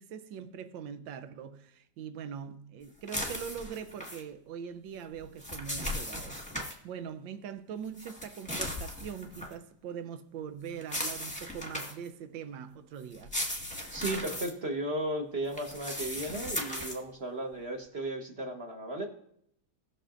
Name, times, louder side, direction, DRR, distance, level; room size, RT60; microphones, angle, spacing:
voice 1, 0.0-13.3, right 7 dB, 85° right, 1.4 m, -42 dB
sound 1, 3.1-4.2 5.2-6.8 8.0-9.5 10.8-12.1 13.1-14.5 15.5-17.0, left 1 dB, 5° left, 1.4 m, -37 dB
voice 2, 13.9-19.1, right 1 dB, 35° right, 1.3 m, -35 dB
19.5 x 6.7 x 2.5 m
omnidirectional pair, 2.0 m